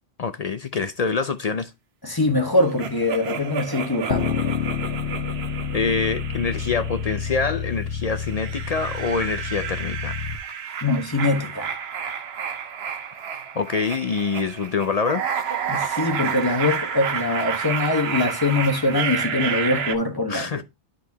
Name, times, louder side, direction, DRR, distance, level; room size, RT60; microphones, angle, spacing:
voice 1, 0.2-1.7 5.7-10.2 13.6-15.2 20.3-20.6, left 5 dB, 55° left, 0.4 m, -25 dB
voice 2, 2.0-4.4 10.8-11.7 15.7-20.6, left 2 dB, 20° left, 1.2 m, -23 dB
sound 1, 2.8-7.5 8.0-20.0, right 7 dB, 65° right, 1.0 m, -30 dB
sound 2, 4.1-10.4, left 7 dB, 75° left, 1.2 m, -29 dB
11.0 x 4.2 x 2.7 m
omnidirectional pair, 1.2 m